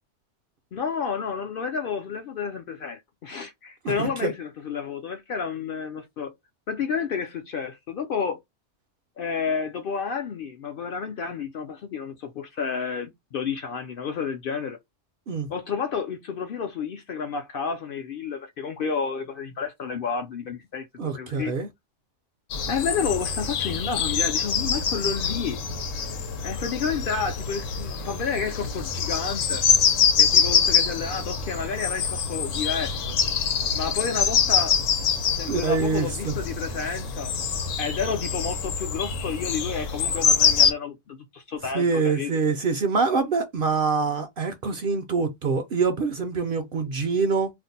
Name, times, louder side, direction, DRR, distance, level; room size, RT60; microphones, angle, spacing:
voice 1, 0.7-6.3 6.7-8.4 9.2-14.8 15.5-20.9 21.1-21.5 22.7-25.6 26.4-29.7 30.2-33.0 33.7-34.8 35.3-37.3 37.8-42.3, left 6 dB, 60° left, 0.6 m, -30 dB
voice 2, 4.0-4.3 15.3-15.5 21.0-21.7 35.4-36.3 41.7-47.5, right 4 dB, 60° right, 0.6 m, -25 dB
sound 1, 22.5-40.7, left 6 dB, 85° left, 1.0 m, -25 dB
2.5 x 2.1 x 3.9 m
omnidirectional pair, 1.3 m